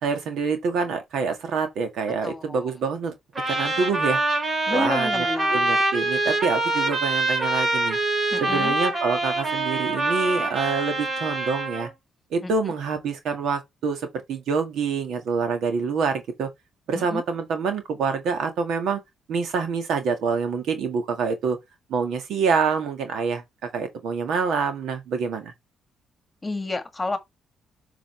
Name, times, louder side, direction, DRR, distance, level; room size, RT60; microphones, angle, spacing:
voice 1, 0.0-3.1 3.5-4.2 4.7-5.2 5.5-8.0 8.4-11.9 12.3-16.5 16.9-19.0 19.3-21.6 21.9-25.5, right 5 dB, 75° right, 1.8 m, -26 dB
voice 2, 2.2-2.6 4.7-5.7 8.3-8.7 12.4-12.5 16.9-17.2 26.4-27.2, left 2 dB, 20° left, 1.5 m, -30 dB
Trumpet, 3.4-11.9, right 2 dB, 40° right, 4.7 m, -25 dB
7.5 x 5.0 x 3.3 m
cardioid pair, 90°, 0 cm